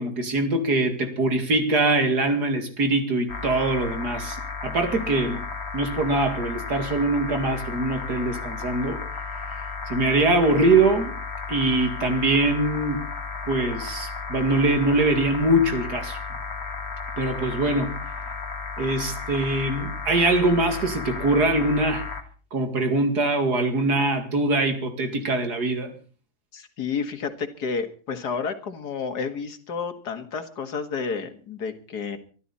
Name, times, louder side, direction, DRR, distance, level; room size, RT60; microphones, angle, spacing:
voice 1, 0.0-4.4 4.6-5.4 5.7-9.0 9.5-11.1 11.5-13.0 13.5-16.2 17.2-18.0 18.8-22.0 22.5-25.9, right 2 dB, 80° right, 6 dB, 2.9 m, -23 dB
sound 1, 3.3-22.2, left 4 dB, 40° left, 1.9 m, -34 dB
voice 2, 26.5-32.2, left 5 dB, 85° left, 8 dB, 2.3 m, -30 dB
24.0 x 12.5 x 4.2 m, 0.40 s
omnidirectional pair, 1.7 m